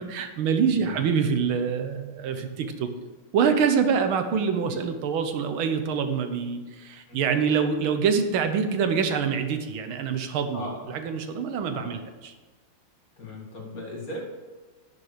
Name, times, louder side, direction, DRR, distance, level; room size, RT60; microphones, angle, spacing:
voice 1, 0.0-2.9 3.3-10.6 10.9-12.3, right 6 dB, 75° right, 7 dB, 1.7 m, -25 dB
voice 2, 0.7-1.1 2.3-2.4 4.7-4.8 7.1-7.2 10.5-10.9 11.7-12.0 13.2-14.2, left 1 dB, 45° left, -1 dB, 2.4 m, -38 dB
11.5 x 6.8 x 5.0 m, 1.3 s
omnidirectional pair, 2.3 m